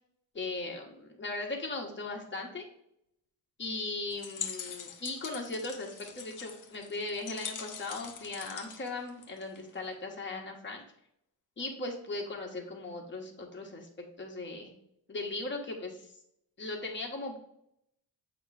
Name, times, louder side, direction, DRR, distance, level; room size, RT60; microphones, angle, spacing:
voice 1, 0.3-2.7 3.6-10.8 11.6-13.9 14.2-14.7 15.1-16.1 16.6-17.4, left 2 dB, 30° left, 1 dB, 1.3 m, -38 dB
sound 1, 4.1-9.7, left 7 dB, 55° left, 0.8 m, -43 dB
8.1 x 3.1 x 4.8 m, 0.76 s
wide cardioid pair, 165°, 36 cm